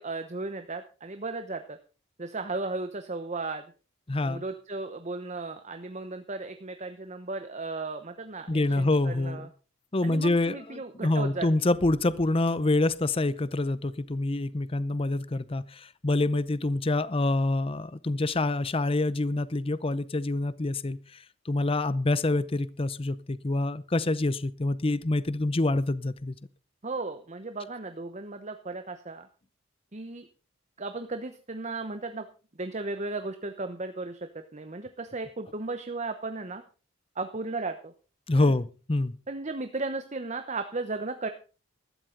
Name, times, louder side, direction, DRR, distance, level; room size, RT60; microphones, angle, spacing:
voice 1, 0.0-1.8 2.2-3.6 4.2-9.5 10.0-11.5 26.8-29.3 29.9-30.3 30.8-32.3 32.6-36.6 37.2-37.9 38.3-38.5 39.3-41.3, right 3 dB, 35° right, 0.9 m, -35 dB
voice 2, 4.1-4.4 8.5-9.4 9.9-26.3 38.3-39.1, left 2 dB, 25° left, 0.6 m, -26 dB
15.5 x 13.0 x 3.9 m
head